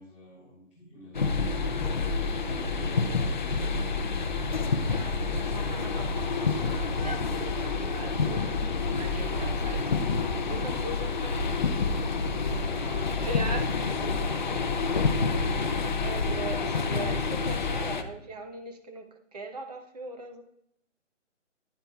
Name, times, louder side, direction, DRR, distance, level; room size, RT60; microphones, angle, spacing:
voice 1, 0.0-2.0 2.4-3.9 12.3-13.2 14.6-14.8, equal, ahead, -11 dB, 1.6 m, -48 dB
sound 1, 1.1-18.0, left 4 dB, 40° left, 0.6 m, -28 dB
voice 2, 4.8-8.6 9.0-9.8 10.4-11.4 12.7-14.6 16.0-20.4, right 2 dB, 30° right, 5 dB, 0.8 m, -40 dB
9.7 x 9.7 x 2.3 m, 0.77 s
hypercardioid pair, 160°, 37 cm